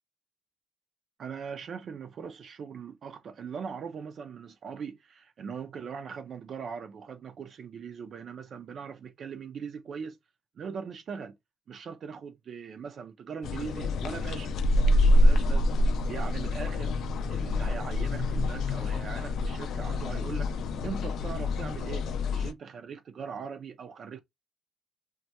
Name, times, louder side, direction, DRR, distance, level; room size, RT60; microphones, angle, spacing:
voice 1, 1.2-10.2 10.6-11.4 11.7-14.6 15.0-17.0 17.3-20.5 20.8-24.2, right 6 dB, 60° right, 0.4 m, -40 dB
sound 1, 13.4-22.5, left 1 dB, 70° left, 0.3 m, -26 dB
2.2 x 2.2 x 2.7 m
cardioid pair, 90°, 0 cm